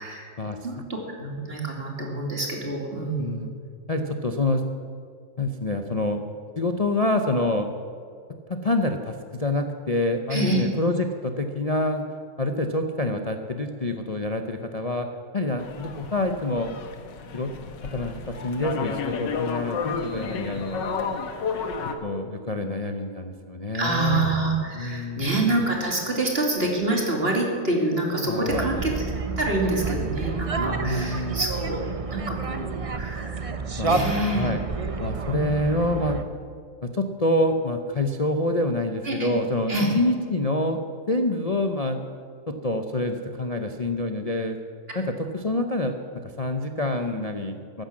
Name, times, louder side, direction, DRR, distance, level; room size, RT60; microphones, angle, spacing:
voice 1, 0.0-0.3 0.6-3.6 10.3-10.6 23.7-29.1 29.4-31.8 32.1-33.5 33.9-34.5 35.3-35.6 39.0-39.4 39.7-39.9, right 2 dB, 35° right, 0 dB, 2.8 m, -27 dB
voice 2, 3.2-3.5 3.9-4.7 5.4-6.2 6.6-7.7 8.5-12.1 12.4-15.1 15.3-16.7 17.3-17.5 17.9-20.9 22.0-24.3 24.7-25.3 28.2-28.7 30.6-31.4 33.8-34.6 35.0-36.2 36.8-42.0 42.5-44.6 44.9-47.8, left 2 dB, 50° left, 5 dB, 0.4 m, -27 dB
sound 1, 15.6-21.9, left 5 dB, 80° left, 1.8 m, -32 dB
sound 2, 28.5-36.2, right 4 dB, 50° right, 0.4 m, -30 dB
14.5 x 12.0 x 7.5 m, 2.2 s
omnidirectional pair, 1.9 m